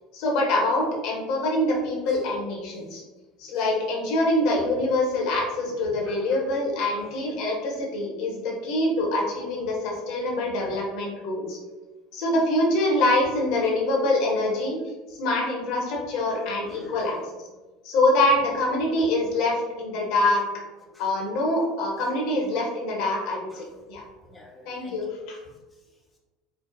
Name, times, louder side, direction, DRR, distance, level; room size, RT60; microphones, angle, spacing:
voice 1, 0.1-3.0 3.4-11.6 12.1-14.8 15.2-17.2 17.8-20.4 21.0-24.0 24.6-25.4, left 1 dB, 55° left, -1 dB, 0.8 m, -25 dB
voice 2, 5.7-6.5 6.8-7.1 16.7-17.3 20.9-21.1 23.5-23.6 24.2-25.8, left 1 dB, 10° left, -3 dB, 0.6 m, -49 dB
4.5 x 2.0 x 2.5 m, 1.2 s
figure-of-eight pair, 70°, 0 cm